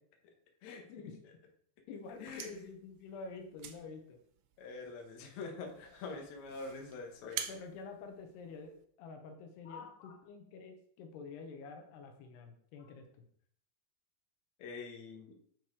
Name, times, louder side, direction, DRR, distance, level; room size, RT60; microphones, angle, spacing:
voice 1, 1.9-4.2 7.5-13.2, left 4 dB, 80° left, 4 dB, 3.1 m, -48 dB
sound 1, 2.0-8.8, right 10 dB, 80° right, 2.7 m, -48 dB
voice 2, 4.6-7.4 9.7-10.1 14.6-15.3, left 4 dB, 60° left, 2 dB, 2.1 m, -45 dB
9.7 x 4.5 x 4.8 m, 0.63 s
omnidirectional pair, 4.8 m